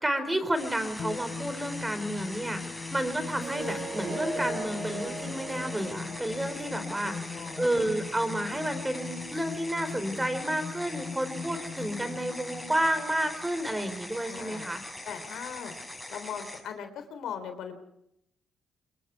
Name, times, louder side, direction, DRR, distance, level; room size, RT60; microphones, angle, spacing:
voice 1, 0.0-14.8, right 1 dB, 10° right, 10 dB, 4.1 m, -31 dB
sound 1, 0.5-16.6, left 1 dB, 5° left, 6.8 m, -42 dB
sound 2, 1.0-13.8, left 5 dB, 55° left, 4.7 m, -41 dB
Harp, 3.3-8.5, right 2 dB, 40° right, 6.2 m, -39 dB
voice 2, 7.0-7.6 14.2-14.7 15.1-15.7 16.1-17.8, left 7 dB, 75° left, 8 dB, 3.5 m, -39 dB
26.5 x 23.0 x 4.7 m, 0.79 s
cardioid pair, 90°, 0 cm